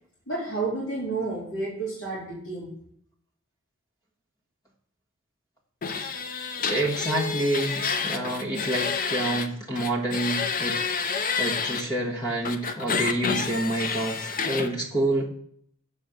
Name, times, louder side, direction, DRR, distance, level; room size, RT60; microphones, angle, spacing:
voice 1, 0.3-2.7, right 3 dB, 70° left, -7 dB, 2.7 m, -31 dB
sound 1, 5.8-9.5 9.7-11.8 12.4-14.7, left 5 dB, 45° left, 0.7 m, -29 dB
voice 2, 6.7-15.3, right 1 dB, 20° left, -1 dB, 1.6 m, -28 dB
7.1 x 4.3 x 6.6 m, 0.64 s
head